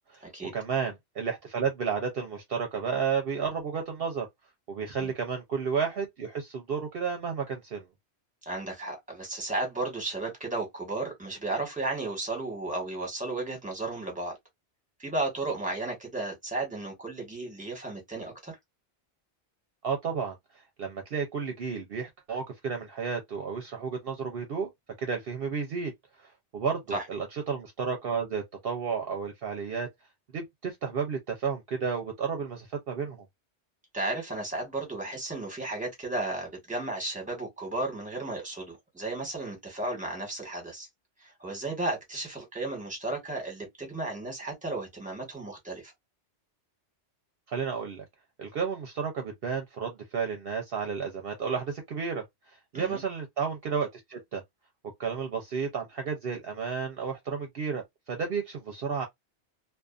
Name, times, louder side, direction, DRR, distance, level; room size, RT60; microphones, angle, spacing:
voice 1, 0.5-4.3 4.7-7.9 19.8-20.4 20.8-24.7 25.0-25.9 26.2-29.9 30.3-33.2 47.5-48.1 48.4-54.4 55.0-59.1, right 6 dB, 60° right, 0.8 m, -32 dB
voice 2, 8.4-14.4 15.0-18.5 26.9-27.0 33.9-40.9 41.2-45.9 52.7-53.0, right 2 dB, 5° right, 1.1 m, -34 dB
2.5 x 2.4 x 2.4 m
omnidirectional pair, 1.2 m